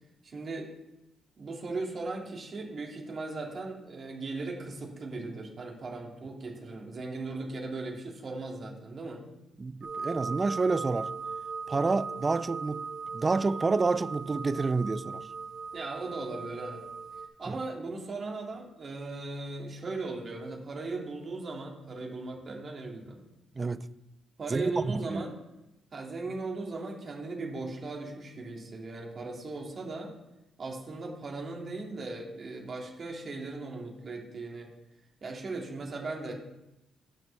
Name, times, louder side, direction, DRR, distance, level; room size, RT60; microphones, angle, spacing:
voice 1, 0.2-0.7 1.4-9.2 15.7-16.8 17.4-23.2 24.4-25.3 25.9-30.1 30.6-34.7 35.2-36.3, right 3 dB, 45° right, 2.2 m, -38 dB
voice 2, 9.6-11.1 11.7-12.9 13.1-15.2 17.5-17.6 23.6-23.8 24.5-25.2, right 3 dB, 30° right, 0.4 m, -29 dB
sound 1, 9.8-17.3, right 5 dB, 60° right, 1.4 m, -39 dB
12.0 x 6.1 x 3.4 m
cardioid pair, 90°, 0 cm